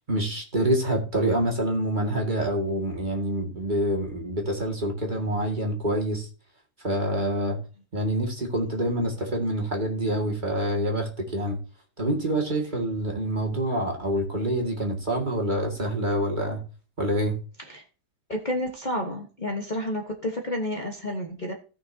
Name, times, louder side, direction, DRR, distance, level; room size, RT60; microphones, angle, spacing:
voice 1, 0.0-6.3 6.8-7.6 7.9-11.6 12.0-16.6 17.0-17.4, right 1 dB, 30° right, 2.1 m, -26 dB
voice 2, 18.3-21.5, left 1 dB, 30° left, 1.3 m, -30 dB
17.5 x 6.0 x 2.8 m
omnidirectional pair, 1.8 m